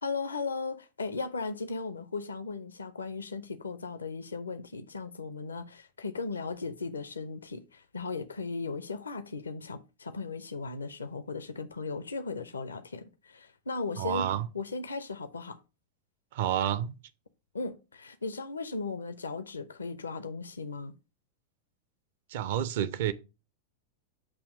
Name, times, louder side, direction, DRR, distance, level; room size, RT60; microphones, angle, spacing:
voice 1, 0.0-15.6 17.5-20.9, left 4 dB, 75° left, 0.6 m, -37 dB
voice 2, 14.0-14.5 16.3-16.9 22.3-23.1, right 10 dB, 55° right, 0.6 m, -29 dB
8.5 x 2.9 x 6.2 m
figure-of-eight pair, 90°, 0 cm